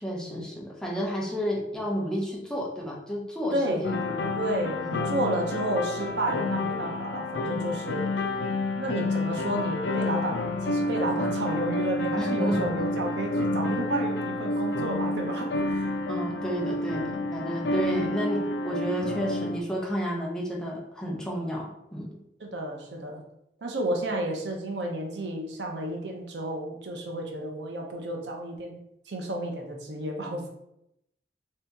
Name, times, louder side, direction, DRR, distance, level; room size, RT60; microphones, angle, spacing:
voice 1, 0.0-4.1 4.8-5.1 12.2-12.9 16.1-22.2, equal, 5° left, -3 dB, 0.6 m, -31 dB
voice 2, 3.5-3.9 4.4-8.0 8.8-15.9 22.4-23.2 23.6-28.8 29.1-30.5, right 1 dB, 75° right, 2 dB, 0.6 m, -31 dB
sound 1, 3.8-19.6, left 2 dB, 70° left, 0.3 m, -29 dB
2.7 x 2.7 x 3.4 m, 0.81 s
head